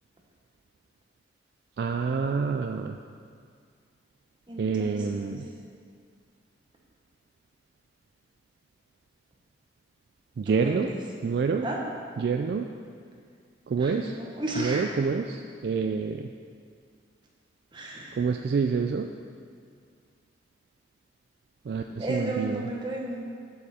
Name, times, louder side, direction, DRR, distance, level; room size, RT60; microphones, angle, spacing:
voice 1, 1.8-3.0 4.6-5.4 10.4-10.9 11.2-11.7 12.2-12.7 13.7-14.2 14.6-16.3 18.2-19.1 21.7-22.7, right 5 dB, 60° right, 5 dB, 0.3 m, -27 dB
voice 2, 4.5-5.4 10.5-11.0 11.6-11.8 13.8-14.8 17.7-18.2 21.9-23.2, right 1 dB, 25° right, -2 dB, 1.1 m, -34 dB
8.1 x 7.3 x 4.3 m, 2.1 s
head